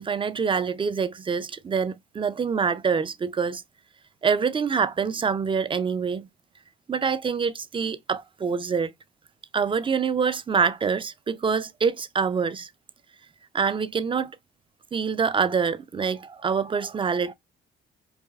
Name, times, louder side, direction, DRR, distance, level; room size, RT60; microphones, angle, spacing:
voice 1, 0.0-3.6 4.2-6.3 6.9-8.9 9.5-12.7 13.5-14.3 14.9-17.3, right 6 dB, 25° right, 0.4 m, -25 dB
4.8 x 2.6 x 2.3 m
cardioid pair, 90°, 20 cm